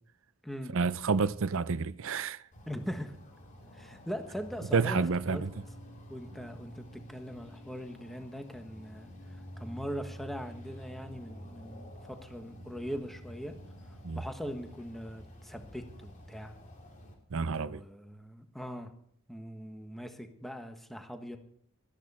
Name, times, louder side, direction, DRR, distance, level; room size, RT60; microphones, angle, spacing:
voice 1, 0.7-2.4 4.7-5.5 14.0-14.2 17.3-17.8, right 5 dB, 65° right, 0.6 m, -29 dB
sound 1, 2.5-17.1, equal, 40° left, 3.6 m, -49 dB
voice 2, 2.7-3.2 3.7-5.4 6.1-13.5 14.1-16.5 17.7-18.9 19.3-21.4, equal, ahead, 1.3 m, -41 dB
16.5 x 13.5 x 4.3 m
head